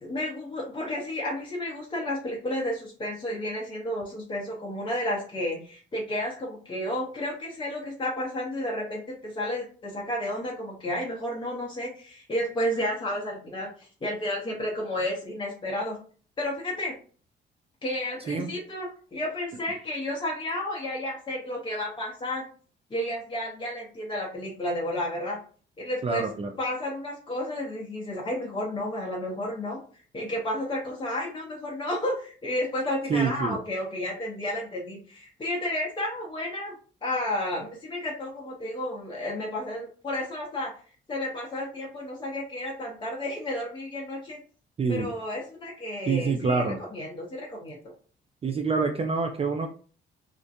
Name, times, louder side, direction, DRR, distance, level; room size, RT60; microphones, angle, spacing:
voice 1, 0.0-16.0 16.4-16.9 17.8-22.4 22.9-25.4 25.8-26.3 26.6-29.8 30.1-36.8 37.0-40.7 41.1-44.4 44.9-47.9, left 1 dB, 25° left, -2 dB, 0.7 m, -32 dB
voice 2, 26.0-26.5 33.1-33.6 44.8-45.1 46.1-46.8 48.4-49.7, right 4 dB, 30° right, 4 dB, 0.3 m, -26 dB
2.4 x 2.1 x 2.6 m, 0.42 s
cardioid pair, 90°, 20 cm